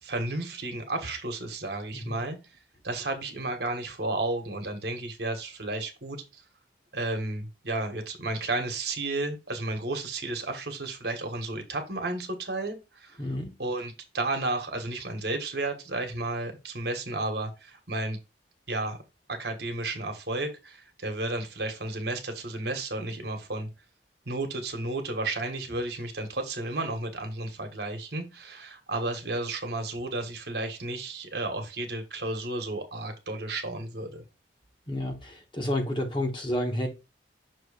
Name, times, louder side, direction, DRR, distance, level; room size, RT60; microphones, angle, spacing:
voice 1, 0.0-2.4 2.8-6.4 6.9-13.2 13.6-18.2 18.7-19.0 19.3-23.7 24.2-34.2, right 2 dB, 60° right, 1.4 m, -32 dB
voice 2, 13.2-13.5 34.9-36.9, left 1 dB, 25° left, 1.3 m, -30 dB
6.3 x 3.1 x 4.8 m
head